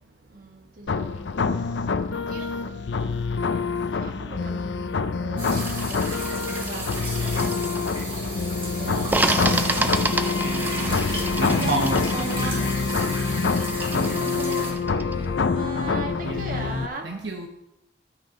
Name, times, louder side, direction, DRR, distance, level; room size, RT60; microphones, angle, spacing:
voice 1, 0.3-2.9 3.9-5.6 6.1-7.4 8.8-12.6 13.7-17.1, right 2 dB, 50° right, 3 dB, 1.5 m, -39 dB
sound 1, 0.9-16.9, left 4 dB, 90° left, 0.5 m, -26 dB
sound 2, 5.4-14.7, right 1 dB, 30° right, 2.7 m, -34 dB
sound 3, 5.6-8.3 9.1-15.3, right 2 dB, 10° right, 0.4 m, -30 dB
voice 2, 8.9-9.9 10.4-11.0 11.4-12.7 13.9-14.7 16.2-17.5, right 2 dB, 80° right, 3 dB, 0.9 m, -31 dB
12.0 x 6.4 x 4.2 m, 0.88 s
head